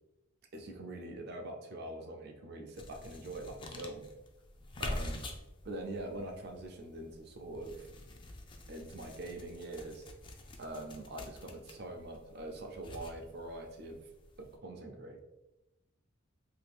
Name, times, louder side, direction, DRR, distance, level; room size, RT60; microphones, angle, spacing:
voice 1, 0.5-4.1 4.8-5.3 5.6-7.9 8.7-10.0 10.6-14.1 14.4-15.2, right 1 dB, 55° right, 3 dB, 0.5 m, -44 dB
sound 1, 2.7-14.5, left 1 dB, 25° left, 0.3 m, -46 dB
2.7 x 2.5 x 3.4 m, 0.96 s
head